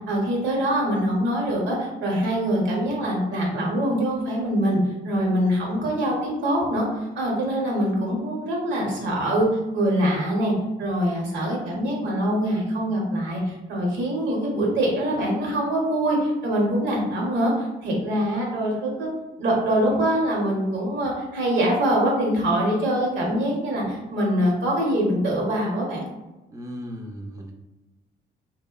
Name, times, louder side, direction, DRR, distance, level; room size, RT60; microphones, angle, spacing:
voice 1, 0.1-4.8 5.0-9.5 9.7-10.5 10.8-19.1 19.4-26.0, right 1 dB, 75° right, -2 dB, 0.8 m, -24 dB
voice 2, 26.5-27.5, equal, 15° right, 2 dB, 0.4 m, -36 dB
2.7 x 2.0 x 2.2 m, 1.0 s
cardioid pair, 70°, 19 cm